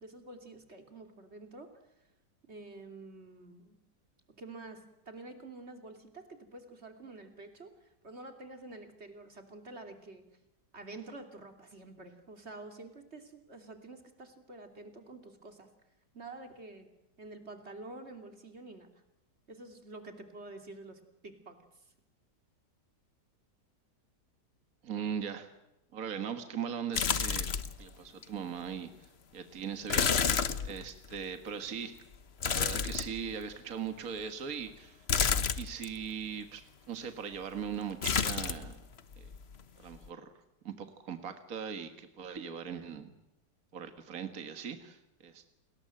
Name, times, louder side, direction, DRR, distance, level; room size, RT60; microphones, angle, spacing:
voice 1, 0.0-1.7 2.0-2.1 2.5-3.8 4.4-10.3 10.7-15.7 16.1-16.9 17.2-18.9 19.5-21.9, right 2 dB, 40° right, 6 dB, 3.3 m, -48 dB
voice 2, 24.8-25.5 25.9-28.9 29.3-30.4 30.6-32.0 32.4-35.1 35.5-36.6 36.9-38.8 39.2-39.3 39.8-40.3 40.6-43.1 43.7-45.5, right 7 dB, 55° right, 8 dB, 2.0 m, -39 dB
sound 1, 26.9-27.8 28.2-28.3 29.9-31.2 32.4-33.5 35.1-35.9 38.0-38.7 39.0-39.6 39.9-40.1, left 6 dB, 45° left, 1.1 m, -30 dB
29.5 x 21.0 x 7.8 m, 0.91 s
omnidirectional pair, 1.8 m